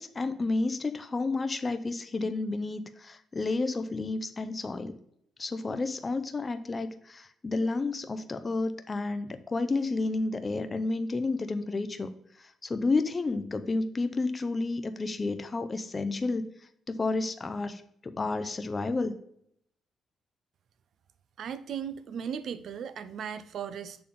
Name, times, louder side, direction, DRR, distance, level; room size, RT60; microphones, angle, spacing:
voice 1, 0.0-4.9 5.4-16.5 16.9-19.1, left 3 dB, 30° left, 9 dB, 0.6 m, -31 dB
voice 2, 21.4-24.0, right 8 dB, 65° right, 13 dB, 0.6 m, -37 dB
6.9 x 3.6 x 5.1 m, 0.72 s
cardioid pair, 90°, 0 cm